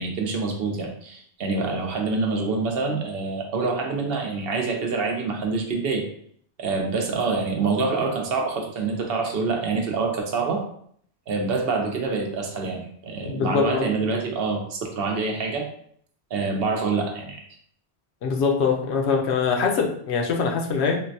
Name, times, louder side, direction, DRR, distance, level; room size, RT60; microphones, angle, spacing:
voice 1, 0.0-6.1 6.6-10.6 11.3-15.7 16.3-17.4, right 4 dB, 65° right, 2 dB, 0.8 m, -26 dB
voice 2, 13.3-13.9 18.2-21.0, left 5 dB, 80° left, 1 dB, 0.8 m, -23 dB
3.7 x 2.1 x 2.6 m, 0.62 s
omnidirectional pair, 1.1 m